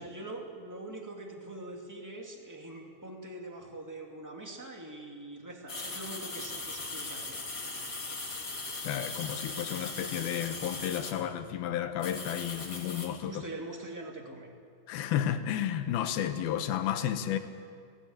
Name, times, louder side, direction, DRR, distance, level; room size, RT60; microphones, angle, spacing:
voice 1, 0.0-7.4 11.1-11.2 13.3-14.5, right 2 dB, 10° right, 0 dB, 1.4 m, -43 dB
sound 1, 5.7-11.1 12.0-13.1, left 3 dB, 25° left, 2.7 m, -39 dB
voice 2, 8.8-13.4 14.9-17.4, left 10 dB, 85° left, 8 dB, 2.9 m, -32 dB
19.0 x 16.5 x 8.8 m, 2.2 s
omnidirectional pair, 4.2 m